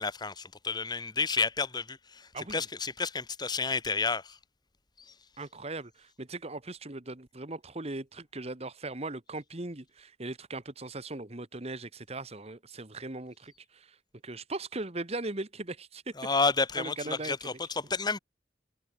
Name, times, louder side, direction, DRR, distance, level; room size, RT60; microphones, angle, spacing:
voice 1, 0.0-4.4 16.2-18.2, left 4 dB, 25° left, 1.5 m, -30 dB
voice 2, 2.3-2.6 5.4-13.9 14.2-16.1 16.8-17.5, right 2 dB, 35° right, 1.6 m, -39 dB
head